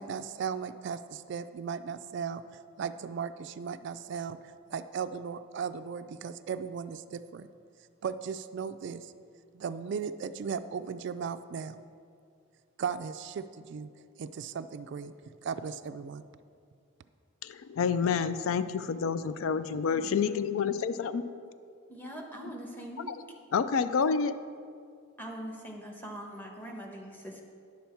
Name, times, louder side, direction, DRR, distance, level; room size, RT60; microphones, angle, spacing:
voice 1, 0.0-2.4 2.8-4.4 4.7-7.5 8.0-9.1 9.5-11.8 12.8-13.9 14.2-16.2, right 6 dB, 55° right, 12 dB, 0.3 m, -36 dB
voice 2, 17.4-21.2 23.1-23.2 23.5-24.4, left 6 dB, 75° left, 13 dB, 0.4 m, -28 dB
voice 3, 19.9-20.5 21.9-23.1 25.2-27.4, equal, 10° left, 0 dB, 1.0 m, -42 dB
10.5 x 7.0 x 4.4 m, 2.3 s
head